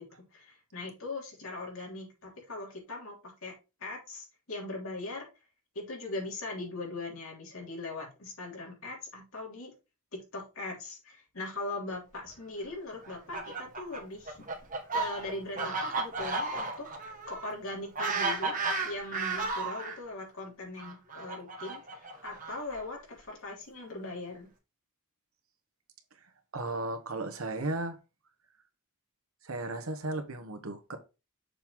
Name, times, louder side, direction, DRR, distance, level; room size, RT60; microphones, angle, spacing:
voice 1, 0.0-3.5 3.8-5.3 5.7-9.7 10.1-14.5 14.9-16.9 17.3-18.6 18.8-24.5, left 2 dB, 70° left, 3.2 m, -40 dB
Fowl, 13.0-20.0 20.8-22.8, right 3 dB, 35° right, 1.4 m, -34 dB
voice 2, 26.5-28.0 29.4-31.0, right 2 dB, 75° right, 1.3 m, -35 dB
6.7 x 3.8 x 4.5 m
head